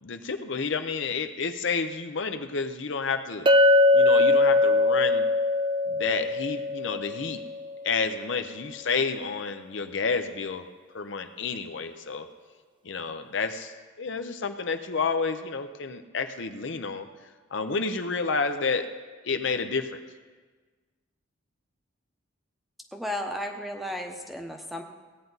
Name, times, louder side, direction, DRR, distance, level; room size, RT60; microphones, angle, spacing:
voice 1, 0.0-3.5 3.9-5.3 5.9-7.4 7.8-10.7 10.9-12.3 12.8-17.1 17.5-18.9 19.2-19.9, left 4 dB, 65° left, 8 dB, 0.7 m, -30 dB
Chink clink, 3.5-7.7, left 2 dB, 25° right, 0.4 m, -21 dB
voice 2, 22.9-24.8, left 1 dB, ahead, 3 dB, 0.8 m, -34 dB
17.0 x 9.2 x 4.0 m, 1.4 s
head